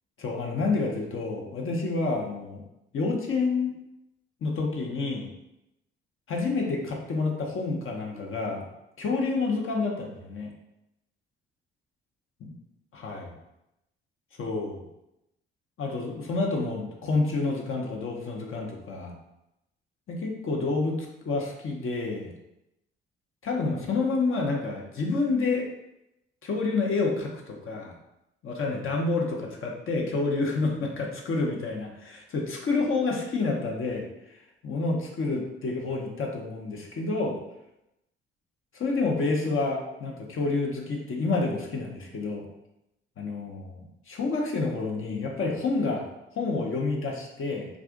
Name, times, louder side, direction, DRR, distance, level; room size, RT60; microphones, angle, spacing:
voice 1, 0.2-2.6 2.9-3.8 4.4-5.3 6.3-8.7 9.0-10.5 12.4-12.5 12.9-13.2 14.4-14.8 15.8-19.1 20.1-22.3 23.4-25.7 26.4-27.9 28.4-34.1 34.6-37.4 38.7-42.4 43.2-46.1 46.3-47.7, left 3 dB, 45° left, -1 dB, 0.8 m, -29 dB
2.4 x 2.4 x 3.6 m, 0.89 s
hypercardioid pair, 45°, 30 cm